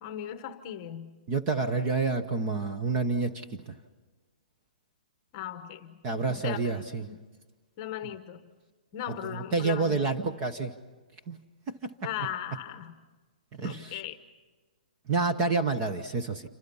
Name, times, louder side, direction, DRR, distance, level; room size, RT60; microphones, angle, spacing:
voice 1, 0.0-1.1 5.3-6.0 6.3-6.7 7.1-7.2 7.8-8.4 8.9-10.0 12.0-12.9 13.6-14.2, left 11 dB, 25° left, 10 dB, 1.1 m, -37 dB
voice 2, 1.3-3.4 6.0-7.1 9.3-10.7 11.3-11.4 11.8-11.9 13.5-13.9 15.1-16.4, right 3 dB, 20° right, 7 dB, 0.9 m, -28 dB
28.0 x 25.5 x 5.5 m, 1.3 s
hypercardioid pair, 180°, 5 cm